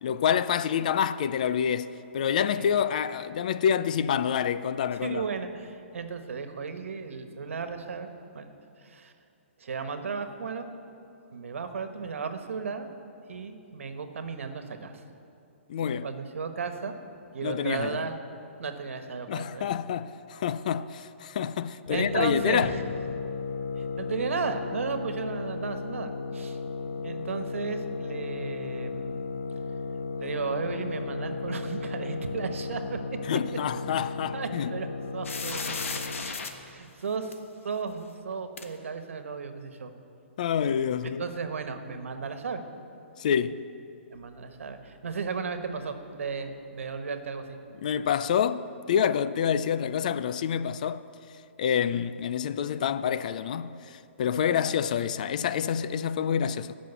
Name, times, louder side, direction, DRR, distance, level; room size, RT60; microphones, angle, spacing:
voice 1, 0.0-1.9 2.1-5.3 15.7-16.1 17.4-18.1 19.3-22.7 33.2-34.8 40.4-41.2 43.2-43.6 47.8-51.0 51.6-56.8, left 8 dB, 35° left, 0.4 m, -27 dB
voice 2, 2.4-2.7 5.0-8.1 8.3-8.5 8.8-9.1 9.6-10.7 11.3-12.9 13.3-15.0 16.0-17.0 17.3-18.2 18.6-19.7 21.9-22.8 23.8-26.6 27.0-29.3 30.2-33.0 34.3-34.9 35.1-36.3 36.7-37.4 37.6-39.9 41.2-42.6 43.4-43.5 44.1-47.6 54.4-54.5, right 5 dB, 85° right, 1.3 m, -34 dB
sound 1, 21.9-36.4, left 4 dB, 70° left, 1.0 m, -35 dB
sound 2, 35.2-36.5 37.3-37.4 38.6-38.7, left 4 dB, 90° left, 1.4 m, -34 dB
16.5 x 6.2 x 8.2 m
hypercardioid pair, 170°, 7 cm